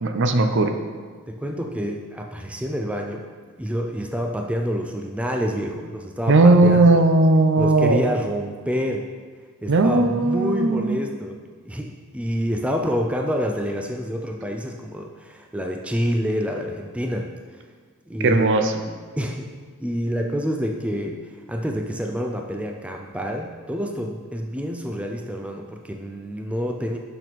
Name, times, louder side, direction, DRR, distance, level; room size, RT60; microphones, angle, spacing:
voice 1, 0.0-0.8 6.3-8.0 9.7-11.0 18.2-18.7, right 2 dB, 55° right, 7 dB, 0.5 m, -17 dB
voice 2, 1.3-7.0 7.6-9.1 9.6-11.4 11.6-17.6 18.1-19.5 19.8-27.0, equal, 5° right, 2 dB, 0.4 m, -28 dB
6.5 x 6.1 x 4.1 m, 1.5 s
head